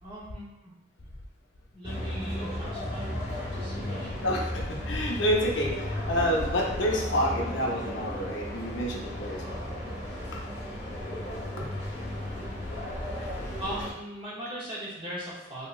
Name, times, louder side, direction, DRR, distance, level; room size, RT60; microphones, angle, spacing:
voice 1, 0.0-0.7 1.7-4.3 13.6-15.7, equal, 30° right, -7 dB, 1.0 m, -39 dB
sound 1, 1.8-13.9, left 1 dB, 40° left, 0.8 m, -35 dB
voice 2, 4.2-9.8 11.6-11.7, equal, 75° left, -1 dB, 0.6 m, -28 dB
2.9 x 2.8 x 2.3 m, 1.0 s
head